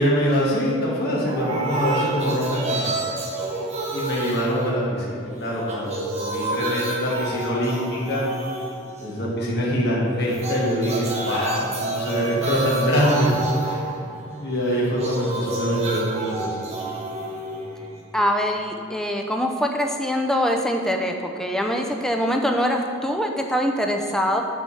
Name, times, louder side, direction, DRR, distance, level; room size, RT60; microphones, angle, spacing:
voice 1, 0.0-3.1 3.9-8.3 9.0-13.3 13.6-14.1 14.4-16.7, equal, 50° left, -5 dB, 1.3 m, -24 dB
sound 1, 1.3-5.2 5.5-9.3 10.3-18.3, right 2 dB, 30° right, 1.1 m, -29 dB
voice 2, 18.1-24.4, equal, ahead, 2 dB, 0.4 m, -23 dB
7.3 x 3.4 x 5.5 m, 2.5 s
head